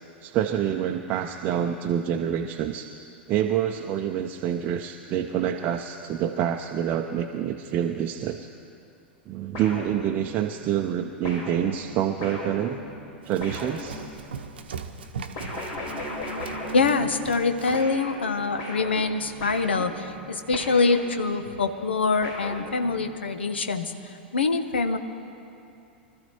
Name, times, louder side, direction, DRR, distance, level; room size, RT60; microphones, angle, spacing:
voice 1, 0.2-2.9 3.3-8.5 9.3-12.8 13.3-14.0, right 10 dB, 35° right, 4 dB, 0.6 m, -27 dB
sound 1, 9.5-10.5 11.2-14.4 15.4-17.5 17.7-21.5 22.2-23.2, left 1 dB, 50° left, 4.3 m, -38 dB
Run, 13.2-17.9, right 5 dB, 65° right, 0.8 m, -39 dB
voice 2, 16.7-23.9 24.3-25.0, left 4 dB, 75° left, 8 dB, 1.0 m, -24 dB
25.0 x 13.5 x 3.1 m, 2.7 s
figure-of-eight pair, 90°, 6 cm